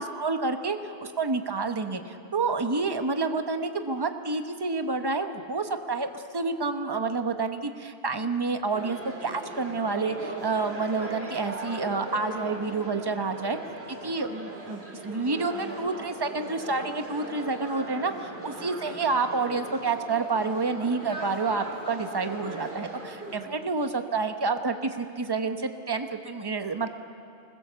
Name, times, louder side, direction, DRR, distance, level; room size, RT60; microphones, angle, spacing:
voice 1, 0.0-13.6 14.0-26.9, right 4 dB, 25° right, 7 dB, 1.0 m, -29 dB
sound 1, 8.7-23.4, right 1 dB, 80° right, 3.3 m, -39 dB
25.0 x 21.0 x 7.0 m, 2.5 s
omnidirectional pair, 1.0 m